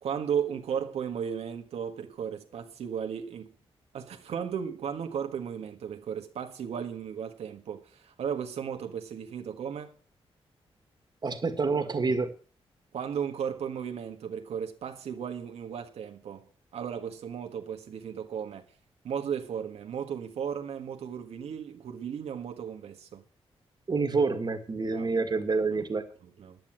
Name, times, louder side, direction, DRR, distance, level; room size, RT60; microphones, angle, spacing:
voice 1, 0.0-3.5 3.9-9.9 12.9-18.6 19.0-23.2 24.9-25.1 26.2-26.6, right 8 dB, 85° right, 1.5 m, -35 dB
voice 2, 11.2-12.3 23.9-26.0, right 4 dB, 45° right, 1.9 m, -27 dB
10.5 x 9.5 x 7.5 m
cardioid pair, 75°, 10 cm